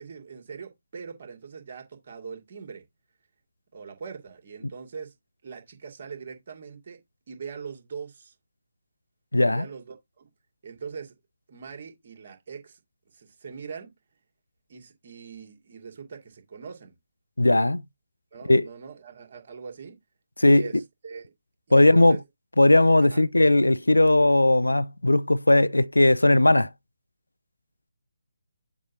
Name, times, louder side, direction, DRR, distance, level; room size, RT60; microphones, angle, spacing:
voice 1, 0.0-2.9 3.7-5.1 5.4-8.3 9.5-10.3 10.6-11.1 11.5-12.8 13.1-13.9 14.7-17.0 18.3-20.0 20.5-21.2 21.7-22.2 23.0-23.2, right 6 dB, 45° right, 2.5 m, -42 dB
voice 2, 9.3-9.7 17.4-17.8 18.5-18.7 20.4-20.7 21.7-22.2 22.6-26.7, left 1 dB, 90° left, 0.4 m, -18 dB
7.3 x 2.7 x 5.9 m
figure-of-eight pair, 150°, 0 cm